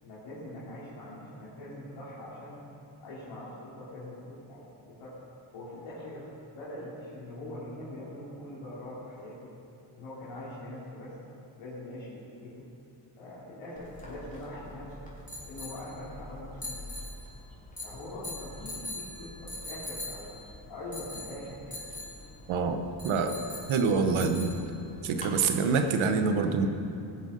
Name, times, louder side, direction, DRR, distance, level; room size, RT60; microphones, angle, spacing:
voice 1, 0.0-2.6 3.0-5.1 5.5-6.2 6.5-9.5 10.0-11.1 11.6-12.6 13.2-15.1 15.4-16.8 17.8-20.4 20.7-21.8, left 1 dB, 85° left, -10 dB, 3.3 m, -43 dB
sound 1, 13.8-25.3, left 2 dB, 15° left, 3.5 m, -43 dB
voice 2, 22.5-23.4 23.7-24.5 25.0-26.7, right 5 dB, 85° right, 7 dB, 1.1 m, -26 dB
17.5 x 8.0 x 5.2 m, 2.7 s
cardioid pair, 70°, 47 cm